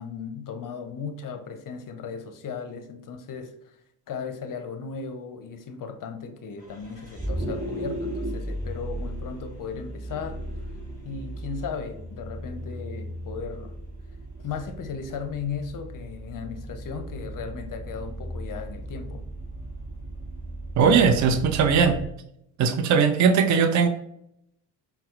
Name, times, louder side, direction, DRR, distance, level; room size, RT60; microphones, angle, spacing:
voice 1, 0.0-3.8 4.1-10.4 11.0-13.7 14.4-19.2, left 6 dB, 40° left, 7 dB, 0.6 m, -36 dB
Vehicle, 6.6-22.1, right 1 dB, 15° right, 1.4 m, -36 dB
voice 2, 20.8-22.0 22.6-23.9, right 6 dB, 40° right, 7 dB, 0.5 m, -19 dB
4.1 x 2.0 x 2.4 m, 0.77 s
supercardioid pair, 60°, 49 cm